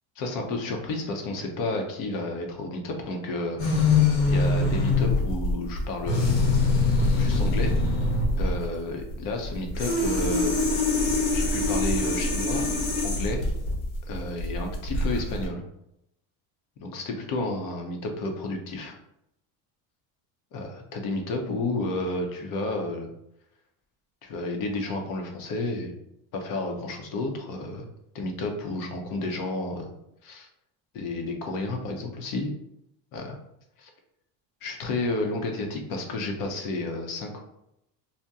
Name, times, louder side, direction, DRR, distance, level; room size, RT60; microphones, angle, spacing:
voice 1, 0.2-3.6 4.3-6.4 7.2-7.8 8.4-10.8 11.3-12.7 13.0-13.4 14.1-15.6 16.8-19.0 20.5-23.1 24.2-25.9 26.3-27.8 28.1-29.9 30.2-30.5 30.9-32.5 33.1-33.4 33.8-33.9 34.6-37.4, left 2 dB, 55° left, 3 dB, 0.8 m, -31 dB
sound 1, 3.6-15.4, left 3 dB, 90° left, 1.2 m, -24 dB
2.8 x 2.1 x 3.5 m, 0.80 s
cardioid pair, 140°, 40 cm